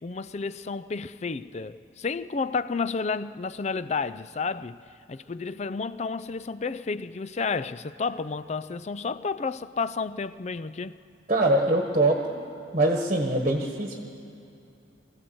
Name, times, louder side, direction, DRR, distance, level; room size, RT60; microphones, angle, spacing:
voice 1, 0.0-4.8 5.1-11.0, left 4 dB, 35° left, 0.4 m, -31 dB
voice 2, 11.3-12.3 12.7-14.0, right 1 dB, 35° right, 1.3 m, -23 dB
23.5 x 14.5 x 7.8 m
head